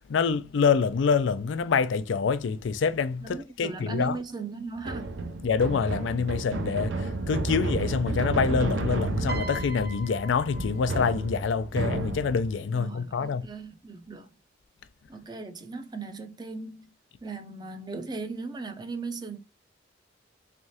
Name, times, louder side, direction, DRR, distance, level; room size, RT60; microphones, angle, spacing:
voice 1, 0.1-4.2 5.4-13.4, left 5 dB, 80° left, 0.4 m, -26 dB
voice 2, 3.2-5.1 12.7-14.3 15.1-16.9 17.2-19.4, right 3 dB, 25° right, 0.5 m, -37 dB
sound 1, 4.8-12.6, right 2 dB, 80° right, 0.5 m, -31 dB
Piano, 9.3-11.6 12.7-12.9, equal, 60° right, 0.9 m, -40 dB
3.6 x 3.3 x 2.7 m
head